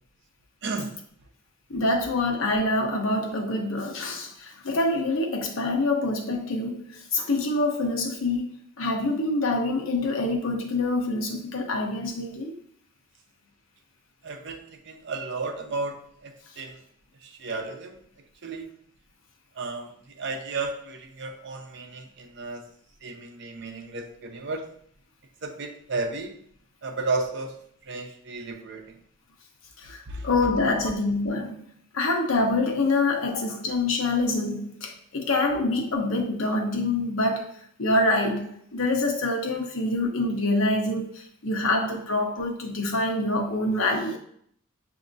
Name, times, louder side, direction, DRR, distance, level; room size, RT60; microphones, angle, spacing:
voice 1, 0.6-0.9 14.2-16.8 17.2-18.0 18.4-18.7 19.6-19.9 20.2-22.6 23.0-24.6 25.4-26.3 26.8-27.5 27.9-29.0 30.1-30.3, right 3 dB, 60° right, 0.7 m, -33 dB
voice 2, 1.7-12.6 29.8-31.6 31.9-44.2, left 2 dB, 85° left, 0.9 m, -26 dB
7.1 x 2.8 x 2.6 m
head